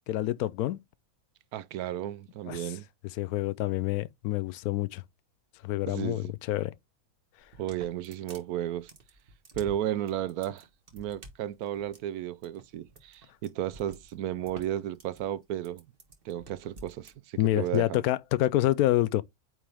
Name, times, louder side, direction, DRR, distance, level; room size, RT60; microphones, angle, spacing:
voice 1, 0.1-0.8 2.5-2.7 3.2-5.0 5.6-6.7 17.4-19.2, left 15 dB, 80° left, 1.0 m, -27 dB
voice 2, 1.5-2.8 5.9-6.3 7.6-8.9 9.6-10.7 10.9-15.8 16.2-18.0, right 11 dB, 80° right, 1.1 m, -33 dB
sound 1, 7.4-17.1, right 2 dB, 40° right, 1.5 m, -50 dB
8.9 x 3.7 x 3.4 m
omnidirectional pair, 1.6 m